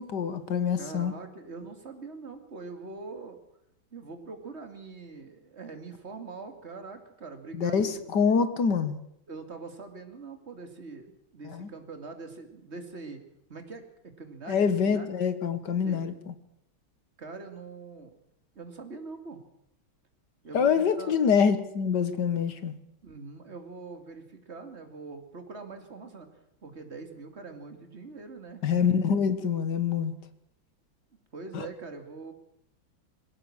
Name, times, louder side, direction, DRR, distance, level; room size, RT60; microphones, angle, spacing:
voice 1, 0.0-1.1 7.6-9.0 11.5-11.7 14.5-16.3 20.5-22.7 28.6-30.1 31.5-31.7, left 6 dB, 60° left, 1.9 m, -25 dB
voice 2, 0.8-3.4 3.9-8.0 9.3-11.1 11.3-13.2 13.5-15.1 15.8-16.2 17.2-18.1 18.5-19.4 20.4-21.2 23.0-26.3 26.6-28.6 31.3-32.3, right 4 dB, 30° right, 2.6 m, -43 dB
21.5 x 17.0 x 7.4 m
omnidirectional pair, 2.2 m